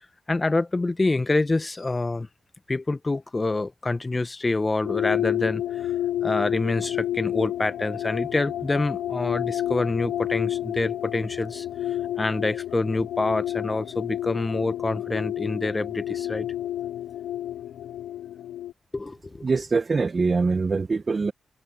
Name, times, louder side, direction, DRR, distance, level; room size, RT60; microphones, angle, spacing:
voice 1, 0.3-2.3 2.7-5.9 6.2-11.7 12.2-16.5 18.9-19.5, left 2 dB, 30° left, 1.5 m, -26 dB
sound 1, 4.8-18.7, left 12 dB, 80° left, 0.8 m, -30 dB
voice 2, 19.4-21.3, right 4 dB, 45° right, 1.7 m, -23 dB
supercardioid pair, 40°, 0 cm